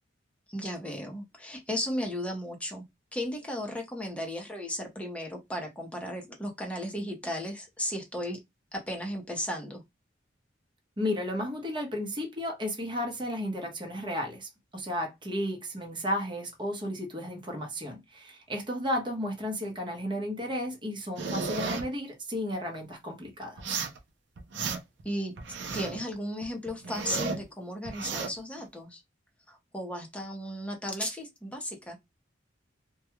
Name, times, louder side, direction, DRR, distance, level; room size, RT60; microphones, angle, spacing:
voice 1, 0.5-2.8 3.1-8.4 8.7-9.8 25.0-25.3 25.7-29.0 29.5-32.0, equal, 5° left, 0.7 m, -35 dB
voice 2, 11.0-23.8, left 1 dB, 25° right, 0.9 m, -33 dB
sound 1, 21.2-21.8 23.6-24.0 24.4-25.0 25.4-26.0 26.4-27.4 27.9-28.3, right 4 dB, 65° right, 0.6 m, -33 dB
2.3 x 2.3 x 2.9 m
head